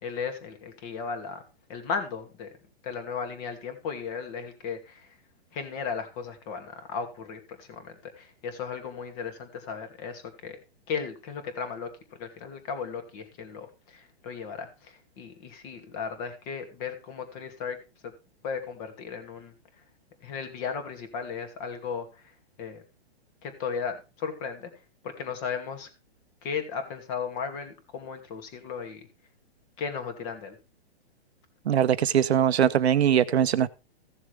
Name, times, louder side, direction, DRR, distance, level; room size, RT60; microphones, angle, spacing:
voice 1, 0.0-1.4 1.7-2.5 2.8-5.1 5.5-10.6 10.9-11.9 12.2-17.8 18.4-19.5 20.2-22.2 22.6-22.8 23.4-24.7 25.0-25.9 26.4-29.0 29.8-30.6, left 6 dB, 35° left, 2.5 m, -35 dB
voice 2, 31.7-33.7, right 9 dB, 90° right, 0.9 m, -21 dB
15.5 x 7.1 x 3.3 m
hypercardioid pair, 150°, 31 cm